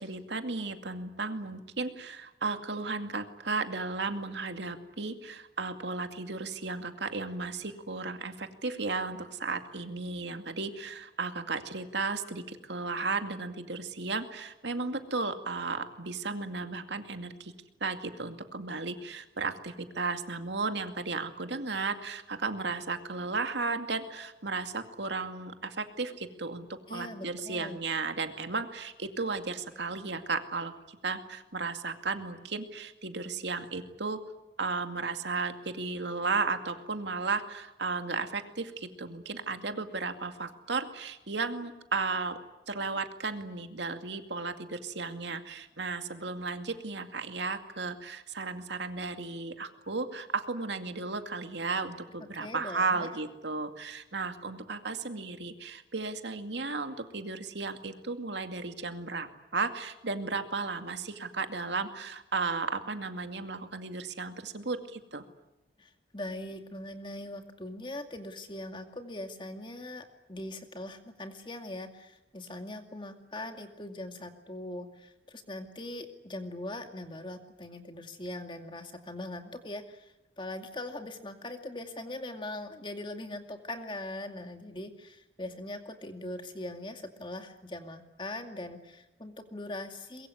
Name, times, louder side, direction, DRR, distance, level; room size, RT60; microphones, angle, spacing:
voice 1, 0.0-17.5 17.8-34.2 34.6-42.4 42.7-65.2, right 4 dB, 75° right, 7 dB, 2.3 m, -34 dB
voice 2, 26.9-27.8 52.4-53.1 65.8-90.3, left 1 dB, 25° left, 6 dB, 2.3 m, -41 dB
23.0 x 22.5 x 9.6 m, 0.95 s
head